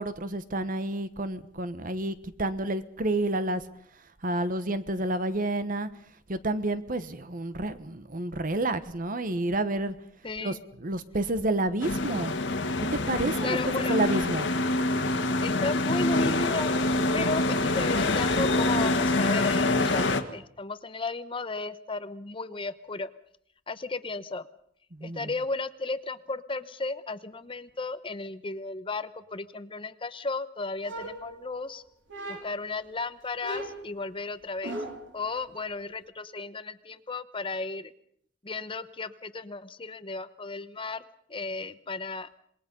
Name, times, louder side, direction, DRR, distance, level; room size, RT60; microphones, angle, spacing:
voice 1, 0.0-3.6 4.2-5.9 6.3-9.9 10.4-12.3 12.9-14.5 24.9-25.3, right 2 dB, 50° right, 12 dB, 1.2 m, -29 dB
voice 2, 10.2-10.6 13.4-14.0 15.4-16.8 17.1-23.1 23.7-24.5 25.0-31.8 32.3-34.8 35.1-37.9 38.4-41.0 41.3-42.3, left 3 dB, 30° left, 12 dB, 0.9 m, -34 dB
sound 1, 11.8-20.2, left 2 dB, 85° left, 1.7 m, -26 dB
sound 2, 30.8-31.7 32.1-32.7 33.4-35.2, right 1 dB, 85° right, 3.7 m, -38 dB
26.5 x 21.0 x 5.4 m, 0.66 s
head